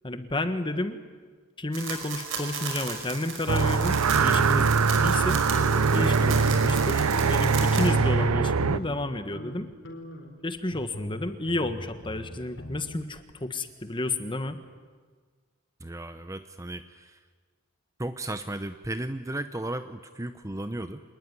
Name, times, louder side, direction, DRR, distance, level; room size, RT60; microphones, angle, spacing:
voice 1, 0.0-1.0 1.6-4.7 5.0-5.4 5.9-9.7 10.4-14.6, left 2 dB, 20° left, 9 dB, 1.5 m, -31 dB
sound 1, 1.7-7.9, right 5 dB, 60° right, 5.3 m, -36 dB
sound 2, 3.5-8.8, right 5 dB, 80° right, 0.7 m, -22 dB
sound 3, 4.9-6.0 6.3-6.9 7.1-9.0 9.3-9.6 9.8-12.9, left 1 dB, 55° left, 4.8 m, -41 dB
voice 2, 15.8-17.2 18.0-21.0, right 1 dB, 15° right, 9 dB, 0.7 m, -35 dB
26.5 x 20.0 x 9.8 m, 1.5 s
head